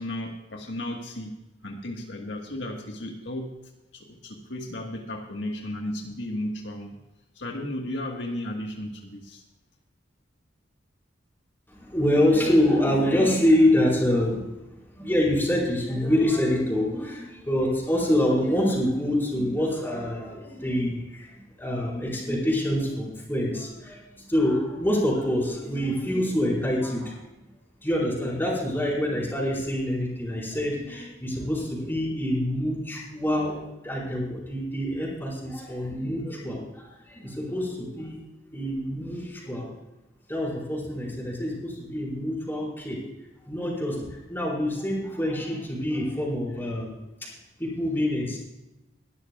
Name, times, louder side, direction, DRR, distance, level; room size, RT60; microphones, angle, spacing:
voice 1, 0.0-1.4 1.6-3.6 3.9-7.0 7.3-9.4, left 1 dB, 75° left, 1 dB, 1.5 m, -34 dB
voice 2, 11.7-14.5 14.9-27.2 27.8-38.2 38.5-39.7 40.3-43.0 43.5-47.0 47.6-48.4, left 1 dB, 10° left, -4 dB, 4.7 m, -26 dB
21.0 x 12.5 x 2.4 m, 0.98 s
head